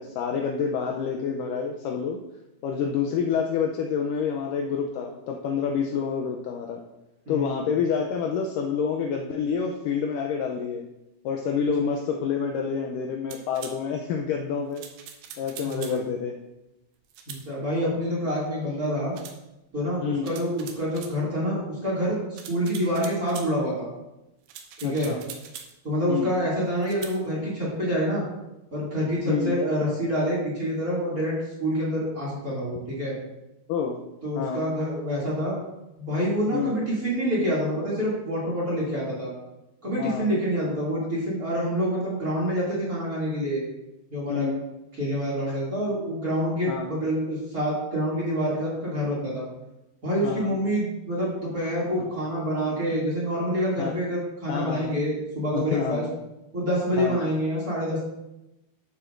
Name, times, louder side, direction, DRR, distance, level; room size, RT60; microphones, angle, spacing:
voice 1, 0.0-2.2 2.6-6.8 7.3-10.9 11.2-14.9 15.4-16.3 20.0-20.3 24.8-25.2 26.1-26.3 29.3-29.6 33.7-34.0 34.4-34.6 36.5-36.7 40.0-40.3 44.3-44.6 46.7-46.9 50.2-50.5 52.7-52.8 53.8-53.9 54.5-55.0 55.5-56.0 57.0-57.2, left 6 dB, 80° left, 3 dB, 1.9 m, -28 dB
voice 2, 7.3-7.6 15.6-16.1 17.3-19.1 19.7-23.9 24.8-25.1 25.8-28.3 28.7-33.1 34.2-35.6 36.0-39.3 39.8-43.6 44.1-44.5 45.0-49.4 50.0-56.0 56.5-58.0, equal, 30° right, -6 dB, 2.2 m, -27 dB
sound 1, 13.3-13.8 14.7-16.0 17.1-17.4 19.1-19.4 20.3-21.2 22.4-23.5 24.5-25.7 26.8-27.2, right 8 dB, 75° right, 2.4 m, -42 dB
11.5 x 7.6 x 2.5 m, 0.93 s
omnidirectional pair, 4.3 m